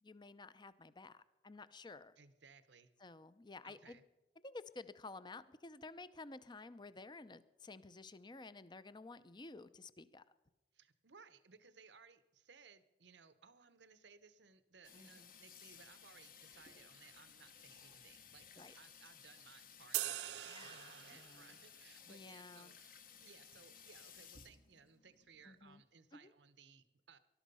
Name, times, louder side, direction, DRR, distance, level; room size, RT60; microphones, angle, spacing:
voice 1, 0.0-2.2 3.0-4.0 4.4-10.2 14.9-15.3 18.6-18.7 20.4-21.6 22.1-22.7 25.5-25.8 26.1-26.3, left 3 dB, 25° left, 14 dB, 0.6 m, -53 dB
voice 2, 2.2-2.9 3.6-4.0 10.7-27.2, right 5 dB, 85° right, 13 dB, 1.0 m, -63 dB
Water tap faucet / Sink (filling or washing), 14.8-25.7, left 7 dB, 50° left, 1.2 m, -59 dB
sound 1, 19.9-21.6, right 15 dB, 65° right, 0.4 m, -42 dB
19.5 x 12.0 x 5.5 m, 1.0 s
head